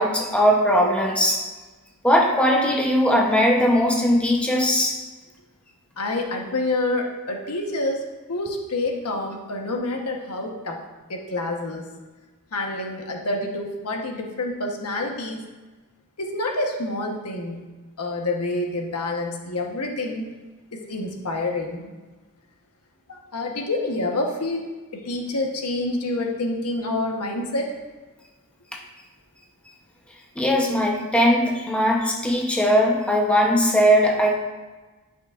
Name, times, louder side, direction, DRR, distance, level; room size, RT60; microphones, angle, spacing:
voice 1, 0.0-1.4 2.0-5.0 30.4-34.3, equal, 5° left, -1 dB, 0.8 m, -19 dB
voice 2, 6.0-10.8 11.1-11.9 12.5-15.4 16.2-17.7 18.0-20.3 20.7-21.9 23.1-24.6 24.9-27.8, left 2 dB, 85° left, 1 dB, 1.1 m, -27 dB
10.5 x 5.7 x 2.5 m, 1.3 s
head